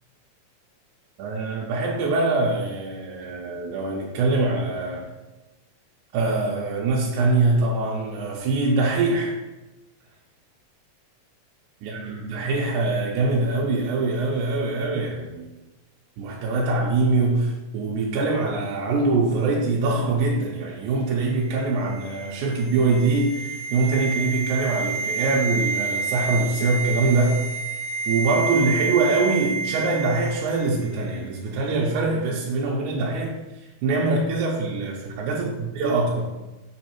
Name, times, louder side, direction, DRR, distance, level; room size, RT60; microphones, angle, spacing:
voice 1, 1.2-5.1 6.1-9.3 11.8-15.5 16.2-27.4 28.1-36.3, right 3 dB, 80° right, -3 dB, 2.1 m, -23 dB
sound 1, 21.4-30.7 30.9-31.1, right 4 dB, 75° left, 2.3 m, -29 dB
7.1 x 3.1 x 4.5 m, 1.1 s
omnidirectional pair, 3.6 m